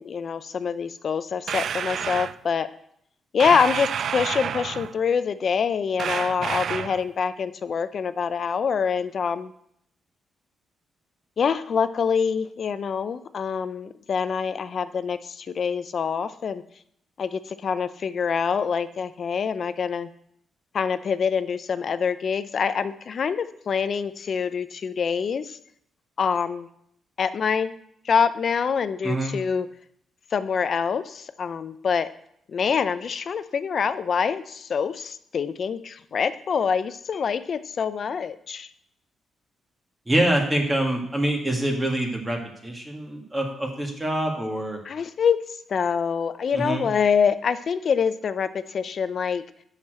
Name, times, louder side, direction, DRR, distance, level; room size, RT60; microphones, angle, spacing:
voice 1, 0.0-2.7 3.3-9.5 11.4-16.6 17.2-20.1 20.7-25.6 26.2-26.7 27.2-27.7 28.1-29.7 30.3-32.1 32.5-38.7 44.8-45.4 45.7-49.4, left 6 dB, 45° left, 13 dB, 0.5 m, -25 dB
sound 1, 1.5-2.4 3.4-5.0 6.0-7.0, right 8 dB, 60° right, 0.3 m, -29 dB
voice 2, 29.0-29.3 40.1-44.8 46.5-46.9, right 1 dB, 15° right, 1 dB, 1.8 m, -25 dB
7.2 x 6.5 x 7.7 m, 0.71 s
cardioid pair, 135°, 0 cm